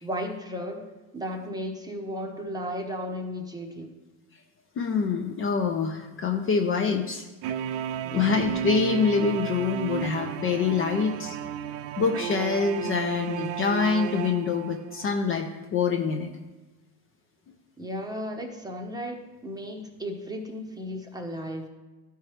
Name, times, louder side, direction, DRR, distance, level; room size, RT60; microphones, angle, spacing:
voice 1, 0.0-3.9 8.0-8.4 17.8-21.6, equal, 10° right, 3 dB, 0.8 m, -35 dB
voice 2, 4.8-7.3 8.1-11.4 12.0-16.3, left 5 dB, 30° left, 4 dB, 0.5 m, -25 dB
sound 1, 7.4-15.2, right 9 dB, 70° right, 0.5 m, -33 dB
13.0 x 4.6 x 3.2 m, 1.2 s
cardioid pair, 130°, 41 cm